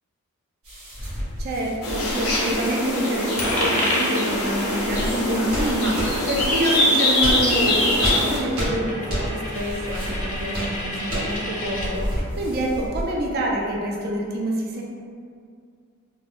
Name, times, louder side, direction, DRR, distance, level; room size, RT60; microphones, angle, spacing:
sound 1, 0.6-3.7 4.3-6.6 7.1-13.3, equal, 70° right, 1.2 m, -31 dB
voice 1, 1.4-14.8, right 1 dB, 45° right, -2 dB, 0.4 m, -27 dB
sound 2, 1.8-8.4, left 1 dB, 80° left, 0.7 m, -23 dB
Coin (dropping), 3.4-11.9, left 1 dB, 35° left, 0.6 m, -31 dB
2.7 x 2.1 x 3.4 m, 2.2 s
head